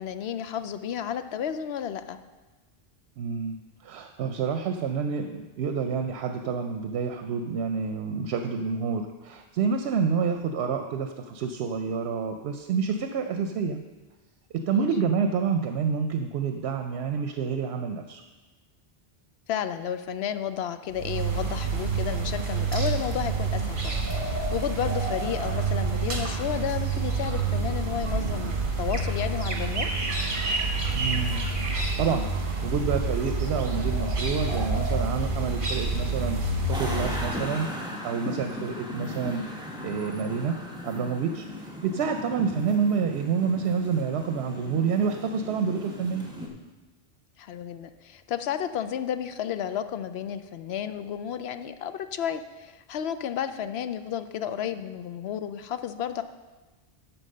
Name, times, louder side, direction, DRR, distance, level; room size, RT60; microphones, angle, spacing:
voice 1, 0.0-2.2 14.7-14.9 19.5-29.9 47.4-56.2, left 9 dB, 75° left, 10 dB, 0.8 m, -32 dB
voice 2, 3.2-13.8 14.5-18.2 30.9-31.4 31.7-39.4 39.8-40.6 40.8-46.2, right 6 dB, 85° right, 6 dB, 0.9 m, -28 dB
sound 1, 20.9-37.3, right 3 dB, 55° right, 1.5 m, -28 dB
sound 2, 36.7-46.5, left 1 dB, 5° right, 1.1 m, -37 dB
11.5 x 4.5 x 6.5 m, 1.2 s
omnidirectional pair, 1.1 m